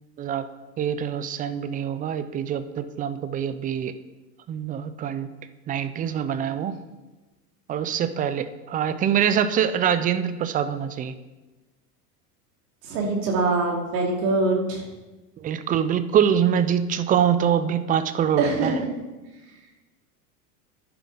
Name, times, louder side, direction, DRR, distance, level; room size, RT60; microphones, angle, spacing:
voice 1, 0.8-4.0 4.5-5.3 5.7-6.8 7.7-11.2 15.4-18.8, right 8 dB, 20° right, 13 dB, 0.3 m, -24 dB
voice 2, 12.9-14.8 18.4-18.7, right 3 dB, 80° right, -1 dB, 2.7 m, -23 dB
10.5 x 10.0 x 3.8 m, 1.1 s
hypercardioid pair, 100°, 49 cm